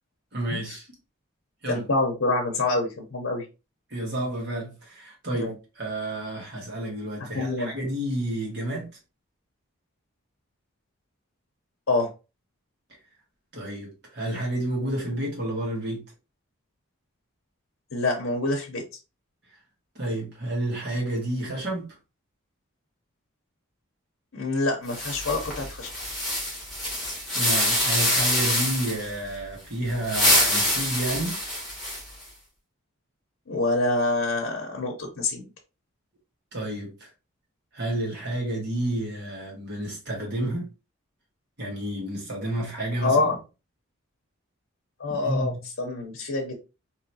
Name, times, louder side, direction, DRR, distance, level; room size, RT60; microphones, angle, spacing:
voice 1, 0.3-0.9 1.6-1.8 3.9-8.9 13.5-16.0 20.0-21.9 27.3-31.4 36.5-37.1 37.7-40.7 41.6-43.3 45.1-45.6, right 1 dB, 50° right, 1.6 m, -30 dB
voice 2, 1.7-3.5 5.3-5.5 7.3-7.7 11.9-12.1 17.9-18.8 24.3-25.9 33.5-35.4 43.0-43.4 45.0-46.5, left 2 dB, 75° left, 0.8 m, -26 dB
sound 1, 24.9-29.1 29.9-32.2, left 1 dB, ahead, 1.5 m, -25 dB
3.9 x 2.9 x 2.8 m
head